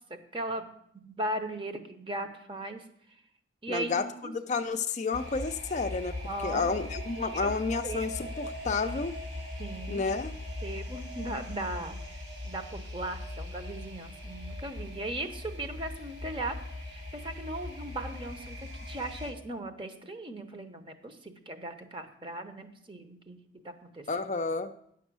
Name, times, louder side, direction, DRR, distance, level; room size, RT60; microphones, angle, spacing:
voice 1, 0.1-0.7 0.9-2.8 3.6-4.3 6.2-6.7 7.3-7.5 7.8-8.1 9.6-10.0 10.6-12.2 12.4-16.6 16.8-23.4 23.6-24.1, right 1 dB, 25° right, 7 dB, 0.9 m, -38 dB
voice 2, 3.7-6.1 6.4-9.1 9.9-10.3 24.1-24.7, left 4 dB, 40° left, 8 dB, 0.4 m, -31 dB
sound 1, 5.1-19.3, left 1 dB, 85° right, 2.7 m, -40 dB
9.9 x 6.1 x 6.1 m, 0.71 s
head